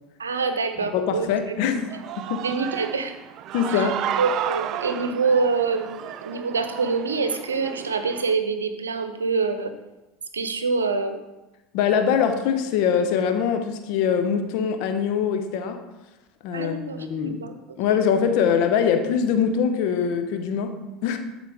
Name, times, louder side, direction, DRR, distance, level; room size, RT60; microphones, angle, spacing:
voice 1, 0.2-1.3 2.4-3.1 4.2-9.7 10.3-11.2 16.5-17.1 17.4-17.5, right 4 dB, 90° right, 8 dB, 0.7 m, -25 dB
voice 2, 0.9-1.9 2.3-2.4 3.5-4.1 11.7-15.8 16.4-17.4 17.8-21.2, left 7 dB, 65° left, 7 dB, 1.0 m, -23 dB
Human voice / Cheering, 1.7-8.3, right 11 dB, 50° right, 0.4 m, -33 dB
12.0 x 4.4 x 3.6 m, 1.0 s
hypercardioid pair, 75°, 0 cm